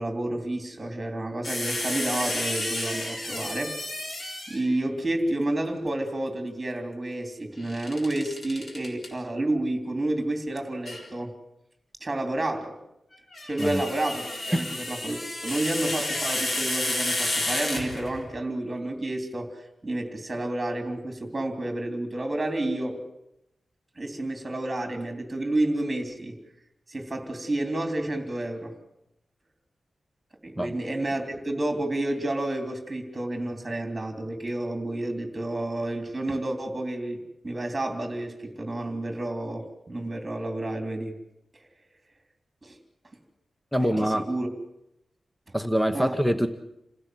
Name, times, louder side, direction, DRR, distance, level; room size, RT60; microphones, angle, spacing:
voice 1, 0.0-3.7 4.5-11.3 12.0-12.7 13.4-23.0 24.0-26.4 26.9-28.7 30.4-41.1 42.6-42.8 43.8-44.5 45.9-46.1, right 1 dB, 20° right, 5 dB, 3.2 m, -30 dB
sound 1, 1.4-4.8 7.6-9.1 10.9-11.1 13.2-18.3, left 1 dB, 45° left, 4.0 m, -31 dB
voice 2, 43.7-44.3 45.5-46.5, equal, 5° left, 9 dB, 1.0 m, -24 dB
27.5 x 16.0 x 7.8 m, 0.84 s
wide cardioid pair, 150°, 0 cm